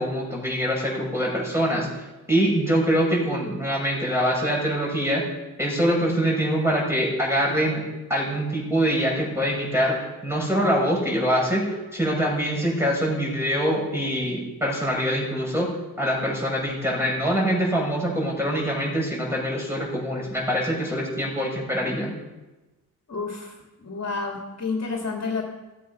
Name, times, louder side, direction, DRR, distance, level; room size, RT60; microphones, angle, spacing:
voice 1, 0.0-1.9 2.3-5.3 5.6-7.8 8.1-15.7 16.0-22.1, equal, 5° right, -2 dB, 6.3 m, -24 dB
voice 2, 23.1-25.4, left 4 dB, 40° left, -1 dB, 2.9 m, -30 dB
16.0 x 15.5 x 5.5 m, 1.1 s
wide cardioid pair, 120°, 39 cm